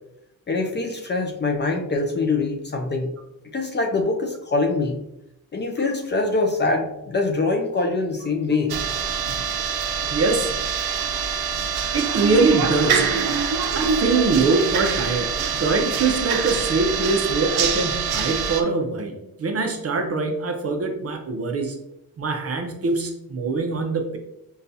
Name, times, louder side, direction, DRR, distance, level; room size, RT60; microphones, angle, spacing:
voice 1, 0.5-3.1 3.5-5.0 5.5-8.7, left 3 dB, 30° left, 2 dB, 0.4 m, -24 dB
sound 1, 8.7-18.6, right 6 dB, 85° right, 0.5 m, -25 dB
voice 2, 10.1-10.5 11.9-13.0 13.7-21.8 22.2-24.2, right 3 dB, 40° right, 4 dB, 0.6 m, -23 dB
5.4 x 2.3 x 2.6 m, 0.85 s
wide cardioid pair, 140°, 37 cm